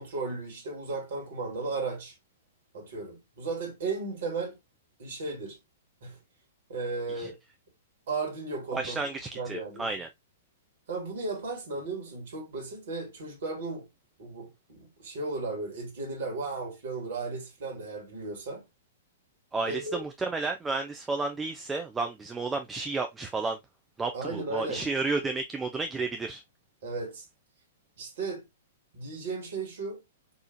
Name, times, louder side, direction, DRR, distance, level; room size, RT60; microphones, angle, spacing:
voice 1, 0.0-2.2 2.7-4.6 5.0-5.6 6.0-6.2 6.7-7.4 8.1-9.0 9.3-9.9 10.9-13.9 14.2-18.6 19.6-20.0 24.1-24.8 26.8-27.3 28.0-28.5 28.9-30.0, right 3 dB, 55° right, 1.4 m, -35 dB
voice 2, 8.7-10.1 19.5-23.6 24.0-26.4, right 3 dB, 10° right, 0.3 m, -32 dB
4.1 x 2.4 x 2.5 m
figure-of-eight pair, 110°, 0 cm